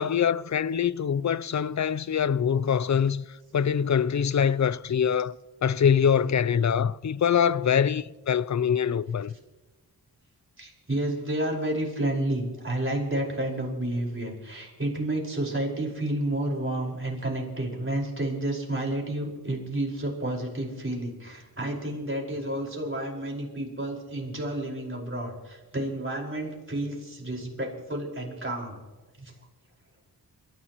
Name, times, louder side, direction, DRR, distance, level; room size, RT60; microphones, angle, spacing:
voice 1, 0.0-5.4 5.6-9.3, left 7 dB, 45° left, 0.5 m, -24 dB
voice 2, 10.6-28.8 29.2-29.3, right 1 dB, 30° right, 5.0 m, -30 dB
28.5 x 14.5 x 3.0 m
wide cardioid pair, 65°, 39 cm